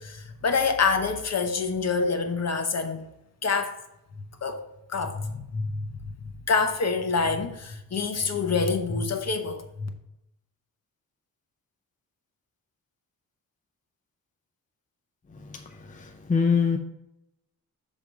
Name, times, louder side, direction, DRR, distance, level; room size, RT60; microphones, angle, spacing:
voice 1, 0.0-3.1 3.4-3.8 4.4-4.6 4.9-9.9, left 4 dB, 45° left, 1.0 m, -27 dB
voice 2, 15.3-16.8, left 5 dB, 20° left, 0.5 m, -25 dB
6.7 x 3.6 x 4.8 m
cardioid pair, 100°, 36 cm